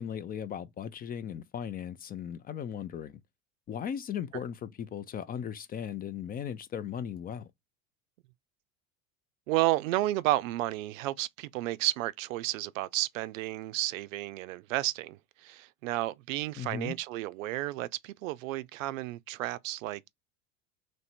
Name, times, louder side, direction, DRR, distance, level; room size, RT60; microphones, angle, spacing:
voice 1, 0.0-3.2 3.7-7.5 16.6-16.9, left 8 dB, 25° left, 0.4 m, -37 dB
voice 2, 9.5-20.1, right 16 dB, 75° right, 0.5 m, -32 dB
3.1 x 2.6 x 4.4 m
hypercardioid pair, 85°, 40 cm